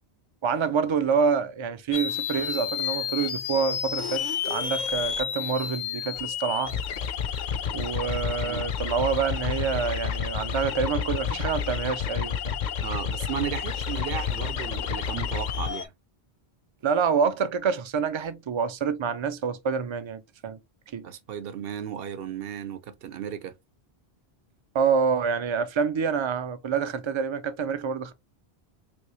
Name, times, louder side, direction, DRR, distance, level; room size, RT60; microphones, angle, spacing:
voice 1, 0.4-6.7 7.7-12.6 16.8-20.6 20.9-21.1 24.7-28.1, right 6 dB, 50° right, 0.3 m, -27 dB
sound 1, 1.9-15.9, left 8 dB, 55° left, 0.5 m, -30 dB
voice 2, 12.8-15.9 21.0-23.5, right 9 dB, 70° right, 0.8 m, -34 dB
3.4 x 2.7 x 3.0 m
omnidirectional pair, 1.1 m